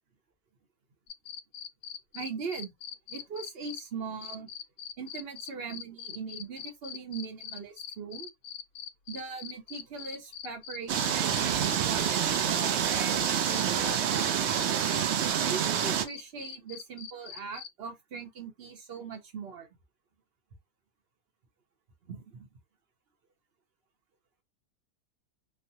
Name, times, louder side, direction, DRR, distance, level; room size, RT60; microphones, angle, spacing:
sound 1, 1.1-3.8 4.2-17.7, left 8 dB, 80° left, 1.2 m, -42 dB
voice 1, 2.1-2.7 3.1-4.5 5.0-8.3 9.1-12.2 12.6-14.7 15.2-19.7 22.1-22.5, right 5 dB, 50° right, 0.9 m, -40 dB
sound 2, 10.9-16.1, right 9 dB, 70° right, 0.7 m, -27 dB
3.2 x 2.1 x 2.7 m
omnidirectional pair, 1.6 m